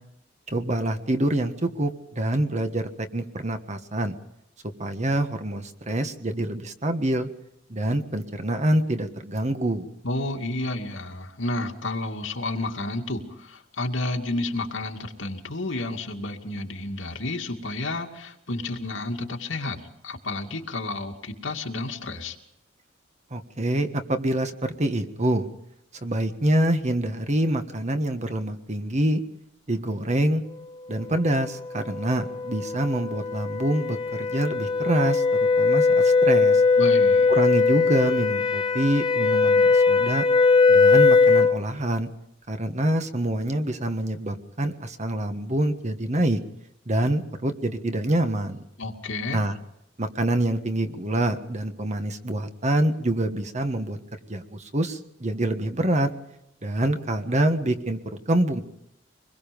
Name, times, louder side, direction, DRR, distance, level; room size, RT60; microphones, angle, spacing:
voice 1, 0.5-4.1 4.8-7.3 7.7-9.9 23.3-25.5 26.0-29.2 29.7-30.4 30.9-35.2 35.6-36.6 37.3-40.2 40.7-42.1 42.5-46.4 46.9-48.6 49.3-49.5 50.0-54.0 54.3-56.1 56.6-58.0 58.3-58.6, right 1 dB, 40° right, 8 dB, 1.5 m, -26 dB
voice 2, 10.0-22.4 36.8-37.3 48.8-49.4, left 2 dB, 85° left, 2 dB, 2.4 m, -31 dB
sound 1, 31.7-41.6, left 4 dB, 20° left, 1.5 m, -20 dB
25.0 x 21.0 x 5.3 m, 0.81 s
head